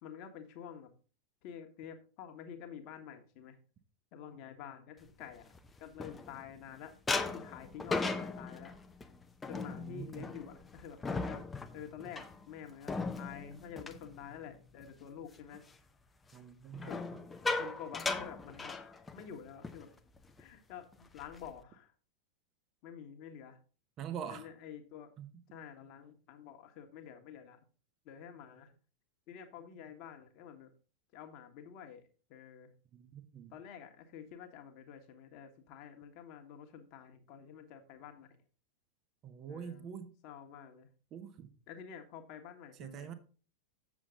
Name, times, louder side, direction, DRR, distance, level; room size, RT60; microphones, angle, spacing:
voice 1, 0.0-0.9 1.4-3.6 4.1-5.5 5.8-6.9 7.2-8.7 9.5-11.4 11.7-15.7 16.9-17.0 17.5-18.8 19.1-19.9 20.4-21.9 22.8-23.6 24.3-25.1 25.5-27.6 28.0-28.7 29.3-30.7 31.1-32.7 33.5-38.3 39.5-39.9 40.2-40.9 41.7-43.1, left 8 dB, 40° left, 1.4 m, -49 dB
sound 1, 5.2-6.6 7.1-14.9 15.2-15.6 16.7-19.3 19.6-19.8 20.2-20.4 20.9-21.6, left 3 dB, 15° left, 0.7 m, -38 dB
voice 2, 9.7-10.3 16.3-17.2 24.0-24.5 25.2-25.3 32.9-33.5 39.2-40.1 41.1-41.5 42.8-43.1, right 8 dB, 30° right, 0.9 m, -45 dB
7.3 x 7.2 x 3.8 m
figure-of-eight pair, 90°, 0 cm